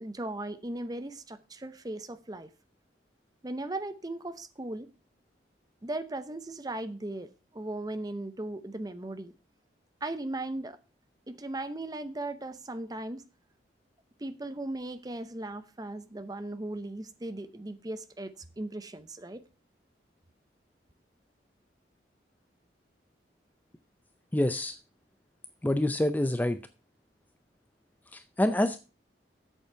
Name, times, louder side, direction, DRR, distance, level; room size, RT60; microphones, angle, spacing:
voice 1, 0.0-2.5 3.4-4.9 5.8-9.3 10.0-10.8 11.3-13.3 14.2-19.4, right 2 dB, 20° right, 0.7 m, -37 dB
voice 2, 24.3-24.8 25.6-26.6 28.1-28.8, left 1 dB, 10° left, 0.4 m, -27 dB
8.1 x 7.0 x 5.6 m
head